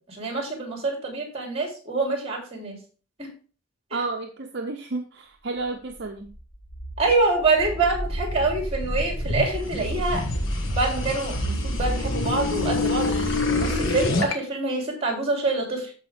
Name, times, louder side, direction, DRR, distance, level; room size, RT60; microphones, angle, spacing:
voice 1, 0.1-2.8 3.2-3.3 3.9-4.0 7.0-10.2 10.7-15.9, right 3 dB, 30° right, 1 dB, 3.3 m, -26 dB
voice 2, 3.9-6.3, right 3 dB, 55° right, 4 dB, 0.8 m, -31 dB
sound 1, 6.3-14.3, left 1 dB, 60° left, 1.7 m, -27 dB
13.5 x 5.0 x 3.5 m, 0.38 s
head